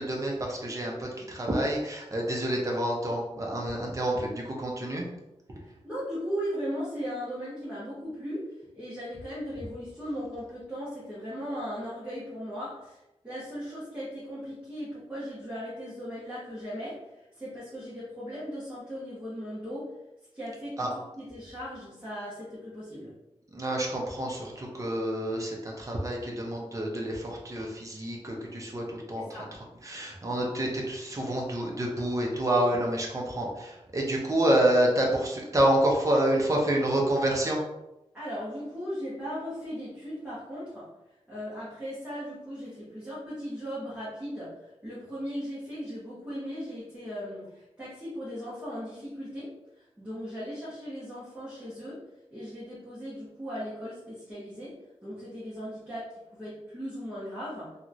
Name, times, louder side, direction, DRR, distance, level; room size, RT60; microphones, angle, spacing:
voice 1, 0.0-5.0 20.8-20.9 23.5-29.5 29.8-37.6, right 1 dB, 30° right, -1 dB, 0.7 m, -28 dB
voice 2, 5.8-17.0 17.4-19.9 20.3-20.9 21.2-23.2 29.2-29.5 38.1-40.9 41.3-49.6 50.0-52.0 52.3-57.8, equal, 10° right, -11 dB, 1.1 m, -37 dB
2.9 x 2.9 x 2.5 m, 0.93 s
wide cardioid pair, 135°, 11 cm